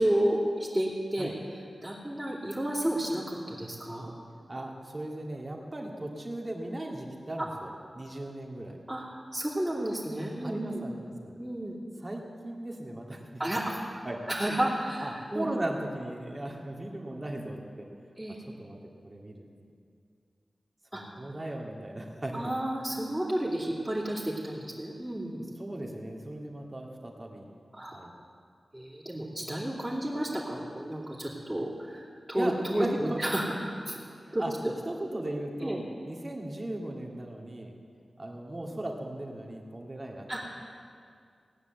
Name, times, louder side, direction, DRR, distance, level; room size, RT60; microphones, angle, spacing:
voice 1, 0.0-4.1 7.4-7.5 8.9-9.0 9.3-10.8 11.4-11.8 13.4-13.8 14.3-15.5 18.2-18.4 20.9-21.0 22.3-25.4 27.7-28.0 28.7-34.0 34.3-34.4 35.6-35.8 40.3-40.5, right 1 dB, 10° right, -8 dB, 2.7 m, -31 dB
voice 2, 4.5-8.8 10.4-11.4 12.0-13.2 14.0-14.2 15.0-17.9 18.6-18.8 19.0-19.5 20.9-22.5 25.6-27.5 27.9-28.1 32.3-33.2 34.3-34.5 34.9-37.7 38.2-40.3, right 1 dB, 30° right, 0 dB, 2.2 m, -37 dB
17.5 x 9.7 x 8.0 m, 2.3 s
wide cardioid pair, 110°, 0 cm